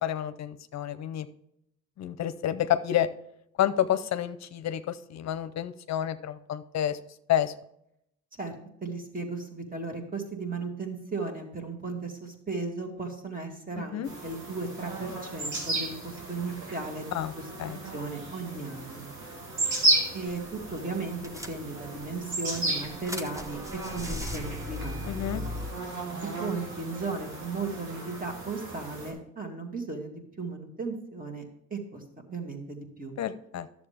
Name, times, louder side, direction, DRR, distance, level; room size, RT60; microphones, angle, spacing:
voice 1, 0.0-1.3 2.0-3.1 3.6-7.0 7.3-7.5 13.9-14.1 17.1-17.3 17.6-17.8 25.1-25.4 33.2-33.9, left 11 dB, 65° left, 12 dB, 0.6 m, -29 dB
voice 2, 8.4-17.4 17.9-19.1 20.1-25.0 25.3-25.5 26.4-33.2, right 3 dB, 30° right, 3 dB, 2.0 m, -36 dB
sound 1, 14.0-29.1, right 2 dB, 80° right, 2.9 m, -34 dB
sound 2, 20.3-20.5 20.8-20.9 21.2-22.0 22.5-25.7, left 1 dB, 10° right, 0.9 m, -37 dB
11.0 x 7.2 x 3.4 m, 0.77 s
cardioid pair, 90°, 30 cm